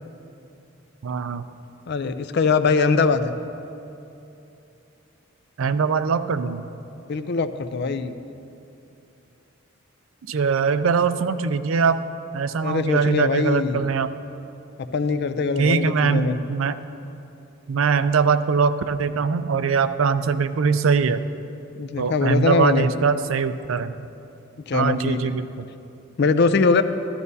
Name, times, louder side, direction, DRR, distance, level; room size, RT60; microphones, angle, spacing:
voice 1, 1.0-1.4 5.6-6.7 10.3-12.0 12.3-14.1 15.6-16.8 17.7-21.2 22.0-23.9 24.7-25.7, right 5 dB, 75° right, 11 dB, 0.4 m, -22 dB
voice 2, 1.9-3.3 7.1-8.1 12.6-13.8 14.9-16.4 21.8-22.9 24.7-25.2 26.2-26.8, left 4 dB, 55° left, 11 dB, 0.4 m, -22 dB
13.5 x 12.5 x 2.7 m, 2.8 s
head